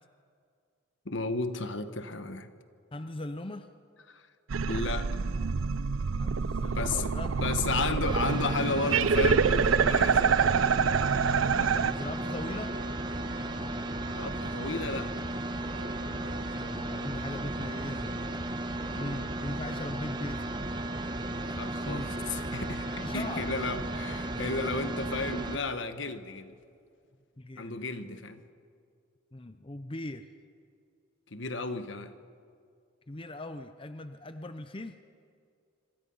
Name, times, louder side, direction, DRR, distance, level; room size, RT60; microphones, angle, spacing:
voice 1, 1.0-2.5 4.1-4.3 4.7-5.1 6.7-7.1 7.4-10.5 14.1-15.1 18.9-19.2 21.5-26.5 27.6-28.4 31.3-32.1, left 3 dB, 65° left, 10 dB, 1.3 m, -33 dB
voice 2, 2.9-3.7 6.2-7.5 11.2-12.8 16.1-18.2 18.9-20.5 21.8-22.1 23.0-23.5 27.4-28.2 29.3-30.3 33.1-35.0, left 1 dB, 25° left, 9 dB, 0.7 m, -40 dB
sound 1, 4.5-11.9, right 5 dB, 85° right, 0.5 m, -26 dB
sound 2, 6.9-16.4, right 3 dB, 60° right, 1.0 m, -51 dB
sound 3, 8.1-25.6, right 1 dB, 20° right, 1.1 m, -35 dB
25.5 x 25.0 x 5.6 m, 2.3 s
head